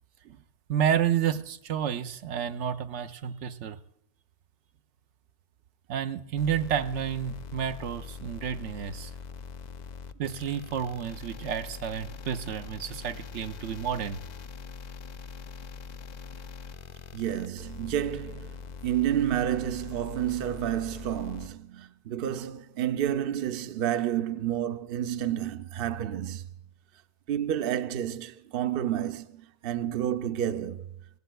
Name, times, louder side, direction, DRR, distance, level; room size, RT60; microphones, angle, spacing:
voice 1, 0.7-3.8 5.9-9.1 10.2-14.2, right 9 dB, 80° right, 0.9 m, -30 dB
sound 1, 6.4-21.5, left 5 dB, 55° left, 0.5 m, -43 dB
voice 2, 17.1-26.5 27.3-30.9, right 11 dB, 60° right, 0.7 m, -30 dB
19.0 x 15.5 x 2.2 m
omnidirectional pair, 1.2 m